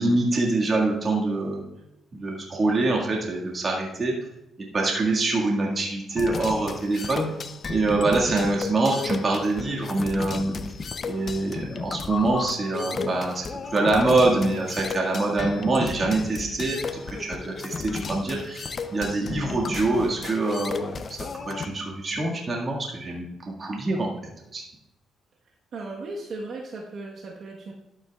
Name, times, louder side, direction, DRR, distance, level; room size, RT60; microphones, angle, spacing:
voice 1, 0.0-1.7 2.2-4.1 4.7-7.2 7.7-10.6 11.0-13.5 13.7-21.0 21.3-23.3 23.6-24.1 24.5-24.7, right 2 dB, 35° right, -2 dB, 1.9 m, -25 dB
sound 1, 6.2-21.7, left 5 dB, 40° left, 0.6 m, -34 dB
voice 2, 25.7-27.7, right 3 dB, 60° right, -2 dB, 1.3 m, -36 dB
12.0 x 8.8 x 2.4 m, 0.91 s
cardioid pair, 90°, 0 cm